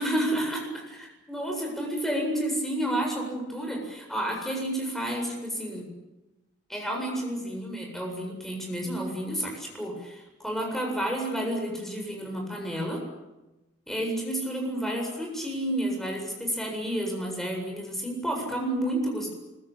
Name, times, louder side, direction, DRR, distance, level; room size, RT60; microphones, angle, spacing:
voice 1, 0.0-5.8 6.7-13.0 13.9-19.3, right 1 dB, ahead, 1 dB, 7.6 m, -30 dB
25.0 x 23.0 x 8.7 m, 1.0 s
head